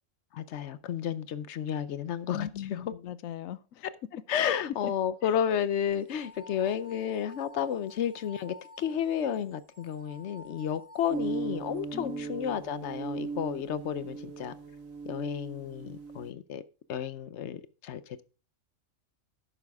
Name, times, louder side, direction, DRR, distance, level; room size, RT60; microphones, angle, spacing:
voice 1, 0.3-2.8 3.8-3.9 4.3-14.6 15.0-16.6 16.9-18.2, left 9 dB, 65° left, 0.9 m, -32 dB
voice 2, 2.3-3.9 4.4-4.5 4.8-4.9 5.2-5.3 11.9-12.3, left 10 dB, 85° left, 1.1 m, -37 dB
sound 1, 6.0-11.8, left 2 dB, 5° right, 1.9 m, -52 dB
sound 2, 11.1-16.3, right 5 dB, 85° right, 1.7 m, -38 dB
11.0 x 8.9 x 3.5 m
omnidirectional pair, 1.4 m